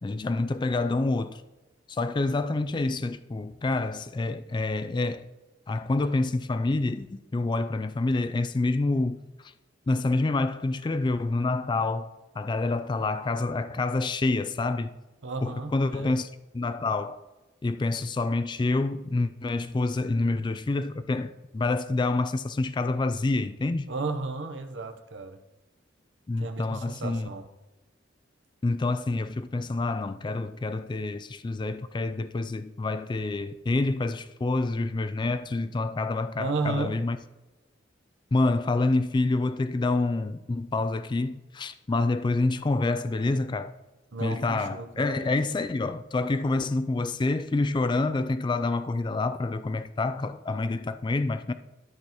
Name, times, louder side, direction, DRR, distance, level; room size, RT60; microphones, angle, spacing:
voice 1, 0.0-1.4 1.9-5.3 5.7-9.5 9.9-12.1 12.4-15.0 15.4-16.3 16.5-17.2 17.6-23.9 26.3-27.3 28.6-37.2 38.3-43.8 44.2-51.5, left 2 dB, 25° left, 0.3 m, -27 dB
voice 2, 15.2-16.1 23.9-25.4 26.4-27.5 36.4-36.9 44.1-45.3, right 3 dB, 70° right, 0.9 m, -33 dB
13.0 x 5.6 x 3.0 m
head